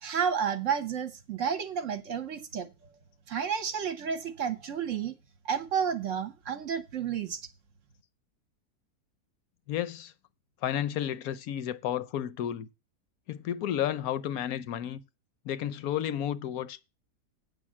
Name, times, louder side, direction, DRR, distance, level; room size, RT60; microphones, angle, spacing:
voice 1, 0.0-2.7 3.3-5.1 5.4-7.4, right 7 dB, 55° right, 1.0 m, -31 dB
voice 2, 9.7-10.1 10.6-12.7 13.3-15.0 15.4-16.8, left 10 dB, 70° left, 1.0 m, -32 dB
8.5 x 5.2 x 7.4 m
omnidirectional pair, 1.8 m